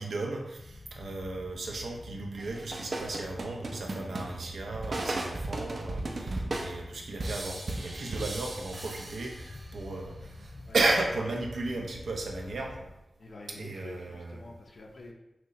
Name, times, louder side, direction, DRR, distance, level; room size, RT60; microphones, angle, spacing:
voice 1, 0.0-12.7 13.6-14.4, right 2 dB, 85° right, 0 dB, 0.8 m, -34 dB
sound 1, 0.6-12.9, left 2 dB, 40° left, 0.3 m, -47 dB
sound 2, 2.4-9.8, right 2 dB, 50° right, 0.6 m, -36 dB
voice 2, 10.7-11.0 12.4-12.5 12.8-12.9 13.2-15.1, left 2 dB, 60° left, 0 dB, 0.8 m, -47 dB
6.0 x 2.7 x 3.2 m, 0.89 s
wide cardioid pair, 125°, 0 cm